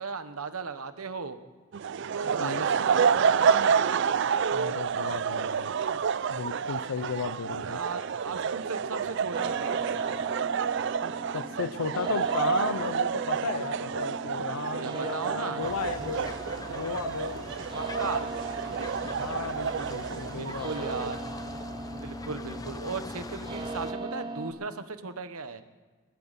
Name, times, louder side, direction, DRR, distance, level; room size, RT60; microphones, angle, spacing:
voice 1, 0.0-1.4 2.1-3.2 7.6-10.2 14.7-15.6 17.7-18.3 20.4-21.2 21.9-25.6, right 4 dB, 80° right, 10 dB, 1.1 m, -36 dB
sound 1, 1.7-21.1, right 6 dB, 50° right, 0.3 m, -29 dB
voice 2, 4.5-5.7 6.3-7.8 11.3-16.4 16.7-17.5 19.2-21.1, left 6 dB, 80° left, 14 dB, 0.5 m, -35 dB
sound 2, 9.3-24.5, right 3 dB, 20° right, 1.1 m, -39 dB
sound 3, 15.6-23.9, left 2 dB, 15° left, 0.6 m, -42 dB
21.5 x 12.5 x 4.1 m, 1.4 s
head